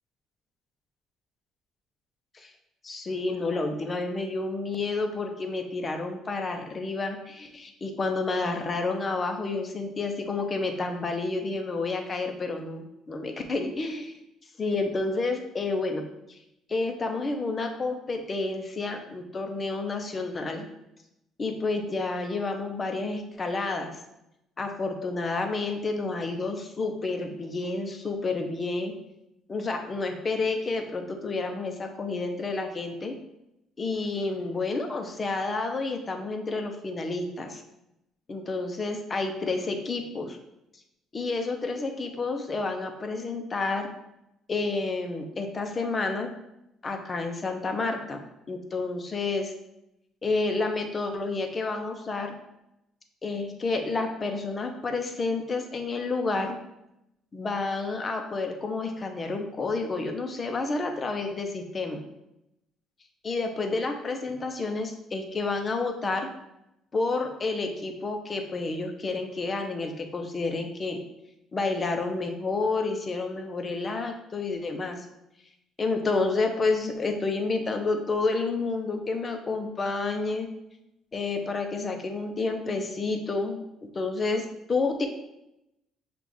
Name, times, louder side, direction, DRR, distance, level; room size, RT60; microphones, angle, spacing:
voice 1, 2.8-14.1 14.6-16.4 16.7-20.7 21.4-24.0 24.6-28.9 29.5-33.2 33.8-37.6 38.3-40.4 41.1-43.9 44.5-46.3 46.8-48.2 48.5-49.5 50.2-52.4 53.2-56.6 57.3-62.0 63.2-66.3 66.9-71.0 71.5-75.0 75.8-80.5 81.1-83.6 83.9-85.1, left 3 dB, 35° left, 5 dB, 0.7 m, -30 dB
5.8 x 2.5 x 3.5 m, 0.86 s
supercardioid pair, 80°, 0 cm